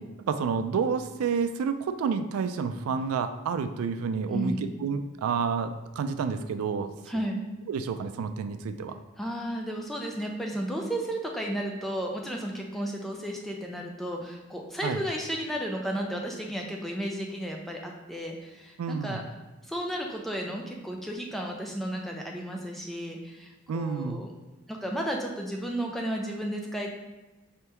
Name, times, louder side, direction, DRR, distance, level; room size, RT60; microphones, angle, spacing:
voice 1, 0.3-4.5 4.8-6.9 7.7-9.0 14.8-15.0 18.8-19.2 23.7-24.2, right 6 dB, 90° right, 9 dB, 0.3 m, -29 dB
voice 2, 4.3-4.6 7.1-7.4 9.2-19.2 19.6-24.3 24.7-26.9, equal, ahead, 0 dB, 0.3 m, -33 dB
4.4 x 3.4 x 2.9 m, 1.1 s
head